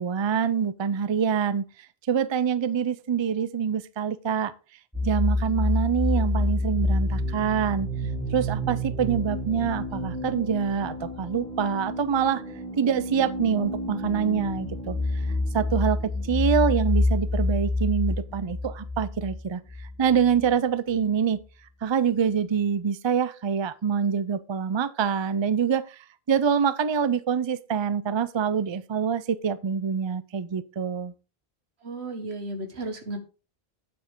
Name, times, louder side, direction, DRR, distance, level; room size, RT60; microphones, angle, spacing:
voice 1, 0.0-1.7 2.1-4.5 5.0-7.9 8.3-12.4 12.8-15.2 15.5-19.6 20.0-21.4 21.8-31.1, right 7 dB, 35° right, 0.5 m, -25 dB
sound 1, 4.9-20.5, left 2 dB, 5° left, 1.9 m, -28 dB
voice 2, 31.8-33.2, right 2 dB, 85° right, 1.9 m, -34 dB
8.7 x 7.6 x 3.7 m
omnidirectional pair, 1.0 m